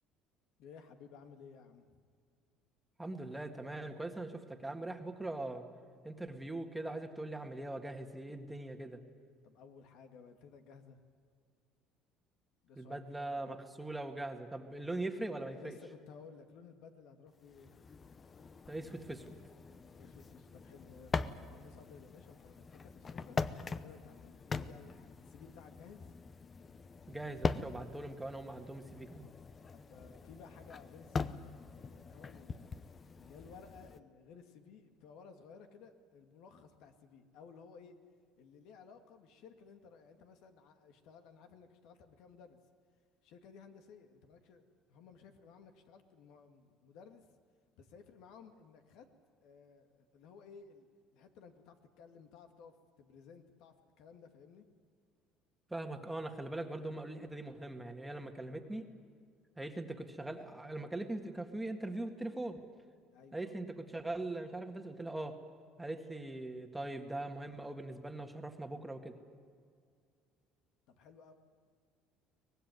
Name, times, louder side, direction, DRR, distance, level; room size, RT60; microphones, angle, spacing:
voice 1, 0.6-2.0 9.4-11.0 12.6-13.6 15.5-17.8 19.9-23.4 23.8-26.0 29.7-32.7 33.2-38.0 38.4-42.6 43.2-47.3 47.8-49.1 49.4-50.9 51.1-54.6 63.1-63.5 70.9-71.3, left 6 dB, 70° left, 6 dB, 2.2 m, -57 dB
voice 2, 3.0-5.6 6.0-9.0 12.8-15.8 18.7-19.3 27.1-29.3 55.7-58.9 59.6-62.6 63.3-65.4 65.8-69.2, right 2 dB, 5° right, 5 dB, 1.8 m, -41 dB
sound 1, 17.4-34.0, left 4 dB, 25° left, 0.8 m, -42 dB
24.0 x 19.0 x 9.5 m, 2.1 s
cardioid pair, 125°, 0 cm